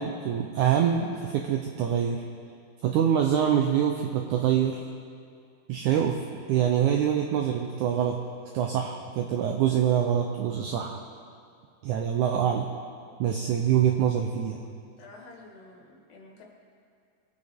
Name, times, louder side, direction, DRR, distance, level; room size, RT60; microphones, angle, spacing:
voice 1, 0.0-2.2 2.8-4.8 5.7-6.2 6.5-8.2 8.5-11.0 11.8-12.7 13.2-14.6, right 9 dB, 80° right, 2 dB, 1.7 m, -25 dB
voice 2, 15.0-16.4, left 3 dB, 70° left, -1 dB, 3.3 m, -50 dB
22.5 x 8.4 x 3.6 m, 2.3 s
omnidirectional pair, 4.2 m